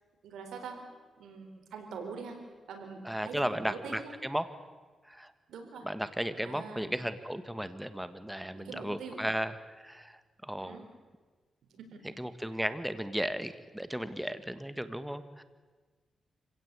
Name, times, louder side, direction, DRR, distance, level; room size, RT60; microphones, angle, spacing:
voice 1, 0.2-0.8 1.2-2.4 2.7-4.2 5.5-5.9 6.4-6.9 8.5-9.3 10.6-10.8 11.7-12.6, right 5 dB, 90° right, 4 dB, 4.3 m, -44 dB
voice 2, 3.0-4.4 5.1-5.3 5.8-9.5 9.8-10.8 12.2-15.4, equal, 5° right, 11 dB, 1.5 m, -35 dB
26.0 x 17.0 x 8.3 m, 1.4 s
cardioid pair, 75°, 0 cm